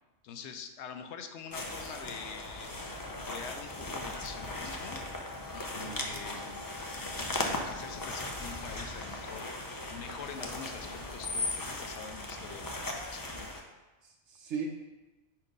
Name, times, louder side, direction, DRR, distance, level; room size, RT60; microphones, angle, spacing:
voice 1, 0.2-2.8 3.3-5.0 5.5-6.6 7.3-9.5 9.9-13.5, left 6 dB, 75° left, 7 dB, 0.8 m, -45 dB
sound 1, 1.5-13.6, left 1 dB, 25° left, 0.5 m, -39 dB
Screech, 2.4-11.7, left 3 dB, 55° left, 1.1 m, -44 dB
Wind instrument woodwind instrument, 3.3-8.6, left 8 dB, ahead, 0.9 m, -52 dB
voice 2, 5.8-6.2 14.0-14.7, right 6 dB, 80° right, -1 dB, 1.1 m, -39 dB
4.9 x 4.4 x 5.2 m, 1.1 s
omnidirectional pair, 1.2 m